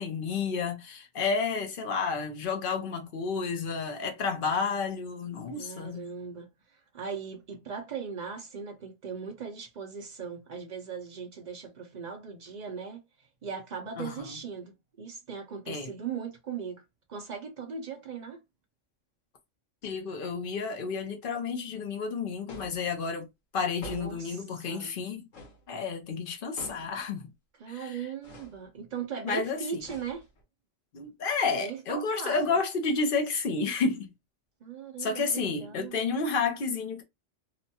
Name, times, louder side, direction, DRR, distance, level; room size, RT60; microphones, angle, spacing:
voice 1, 0.0-6.1 14.0-14.4 15.7-15.9 19.8-23.3 23.5-25.3 25.7-27.3 27.7-28.1 29.2-29.8 30.9-34.1 35.0-37.0, left 4 dB, 55° left, 0.7 m, -31 dB
voice 2, 5.5-6.5 6.9-13.0 13.4-16.8 17.1-18.4 23.8-24.9 27.6-30.2 31.6-32.4 34.6-35.9, right 6 dB, 65° right, 0.4 m, -39 dB
sound 1, 22.5-22.9 23.8-24.3 25.3-25.6 26.6-27.0 28.2-28.6 29.8-30.4, left 1 dB, 85° left, 1.3 m, -45 dB
2.9 x 2.2 x 2.7 m
omnidirectional pair, 1.3 m